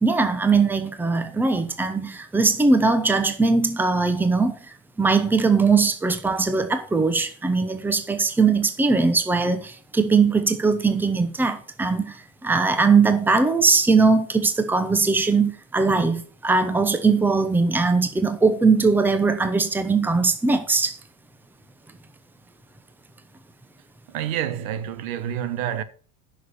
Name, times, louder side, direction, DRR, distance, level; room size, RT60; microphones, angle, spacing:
voice 1, 0.0-4.6 5.0-20.9, right 4 dB, 5° right, 0.9 m, -20 dB
voice 2, 24.1-25.8, right 10 dB, 80° right, 1.4 m, -28 dB
10.0 x 6.3 x 6.7 m
supercardioid pair, 145°, 41 cm